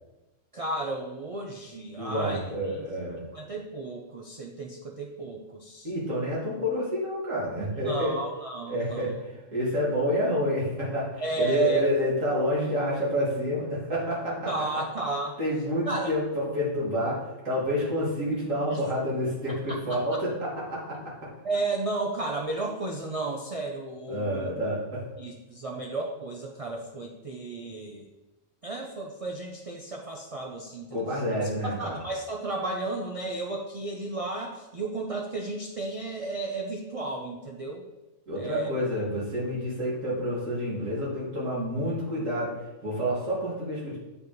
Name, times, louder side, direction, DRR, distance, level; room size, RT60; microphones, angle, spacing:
voice 1, 0.5-2.4 2.7-2.9 3.2-5.9 7.8-9.1 11.2-11.9 14.5-15.4 15.9-16.1 18.7-18.8 19.7-20.0 21.4-24.5 25.2-28.0 28.6-31.0 31.6-37.8 38.4-38.7, right 3 dB, 40° right, 1 dB, 0.5 m, -33 dB
voice 2, 2.0-3.2 5.8-8.1 8.7-9.1 9.5-14.5 15.4-21.3 24.1-25.0 30.9-32.0 38.3-42.5 42.8-44.0, equal, 85° right, -7 dB, 2.6 m, -28 dB
7.4 x 4.9 x 3.1 m, 1.0 s
omnidirectional pair, 1.3 m